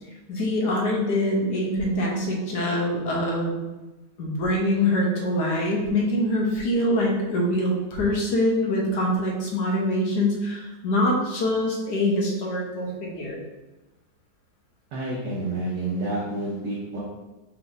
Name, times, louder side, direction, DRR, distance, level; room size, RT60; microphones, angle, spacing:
voice 1, 0.3-3.6 4.2-13.4, left 1 dB, 75° left, -1 dB, 1.5 m, -24 dB
voice 2, 14.9-17.0, right 2 dB, 75° right, -6 dB, 1.5 m, -29 dB
4.5 x 3.8 x 2.7 m, 1.1 s
omnidirectional pair, 1.8 m